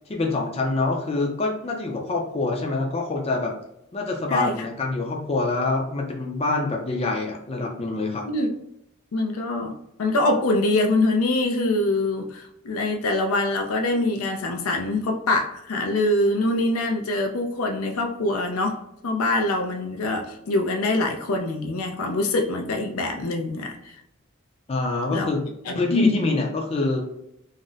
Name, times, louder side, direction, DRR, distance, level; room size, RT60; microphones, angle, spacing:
voice 1, 0.1-3.5 3.9-8.2 24.7-25.4 25.7-27.0, left 3 dB, 30° left, 1 dB, 0.4 m, -26 dB
voice 2, 4.3-4.7 8.3-8.5 9.1-9.7 10.0-18.8 19.0-23.9 25.1-25.3 25.7-26.4, left 2 dB, 90° left, 3 dB, 0.5 m, -24 dB
2.5 x 2.0 x 3.8 m, 0.80 s
head